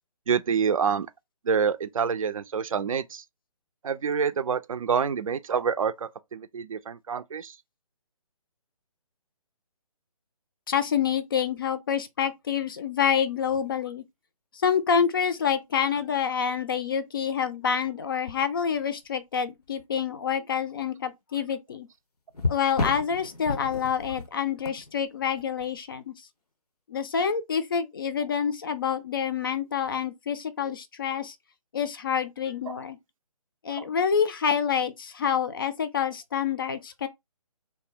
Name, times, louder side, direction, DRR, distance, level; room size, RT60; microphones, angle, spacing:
voice 1, 0.3-1.1 1.4-3.2 3.8-7.6 32.7-32.8 33.8-33.9, right 6 dB, 60° right, 0.4 m, -27 dB
voice 2, 10.7-14.0 14.5-21.9 22.5-26.1 26.9-31.4 31.7-33.0 33.6-37.1, left 7 dB, 35° left, 0.4 m, -27 dB
sound 1, 13.3-13.7 15.2-15.3 16.0-16.1 18.3-19.1 19.6-19.8 22.3-26.0 29.8-30.0, left 3 dB, 85° left, 0.6 m, -34 dB
2.6 x 2.0 x 3.7 m
figure-of-eight pair, 140°, 19 cm